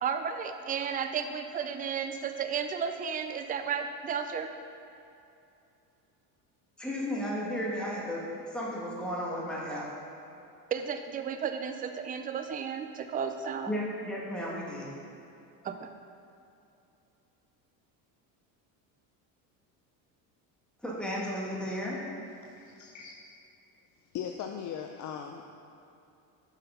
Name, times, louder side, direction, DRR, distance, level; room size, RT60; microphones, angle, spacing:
voice 1, 0.0-4.5 10.7-13.7 15.6-15.9, right 7 dB, 20° right, 7 dB, 0.4 m, -33 dB
voice 2, 6.8-9.9 13.7-14.9 20.8-22.0, equal, ahead, -5 dB, 1.7 m, -34 dB
voice 3, 22.4-23.2 24.1-25.5, left 8 dB, 40° left, 3 dB, 0.5 m, -39 dB
5.8 x 5.8 x 5.6 m, 2.7 s
supercardioid pair, 85°, 50 cm